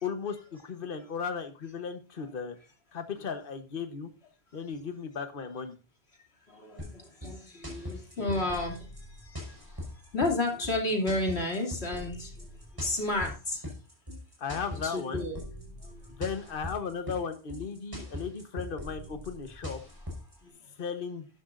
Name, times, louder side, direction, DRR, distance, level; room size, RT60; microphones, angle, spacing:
voice 1, 0.0-2.6 2.9-4.1 4.5-5.7 14.4-15.3 16.1-19.8 20.8-21.3, left 6 dB, 55° left, 8 dB, 1.3 m, -36 dB
voice 2, 6.5-13.7 14.7-15.4 15.8-16.2 20.4-20.5, left 2 dB, 75° left, 1 dB, 3.2 m, -32 dB
sound 1, 6.8-20.4, left 1 dB, 20° right, 5.2 m, -41 dB
12.5 x 11.5 x 2.6 m, 0.33 s
omnidirectional pair, 1.1 m